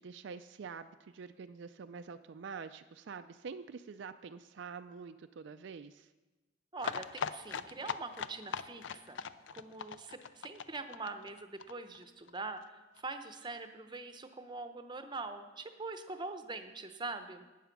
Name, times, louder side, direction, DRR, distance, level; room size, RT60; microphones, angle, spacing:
voice 1, 0.0-6.1, right 5 dB, 60° right, 9 dB, 0.4 m, -46 dB
voice 2, 6.7-9.2 9.5-17.4, right 3 dB, 20° right, 8 dB, 0.7 m, -43 dB
Horsewagon away, 6.8-12.4 12.6-12.7 13.0-13.1 13.3-13.4, left 6 dB, 60° left, 0.4 m, -40 dB
12.0 x 9.0 x 5.9 m, 1.2 s
head